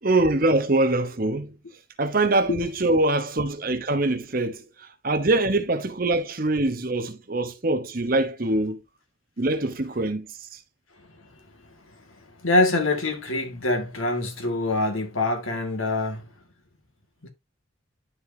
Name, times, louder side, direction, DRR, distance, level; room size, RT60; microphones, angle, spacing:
voice 1, 0.0-1.5 2.0-8.8 9.4-10.3, right 2 dB, 45° right, 1.0 m, -24 dB
voice 2, 11.0-11.3 11.6-12.0 12.4-16.3 17.2-17.3, left 2 dB, 85° left, 2.0 m, -25 dB
11.5 x 4.9 x 2.8 m
head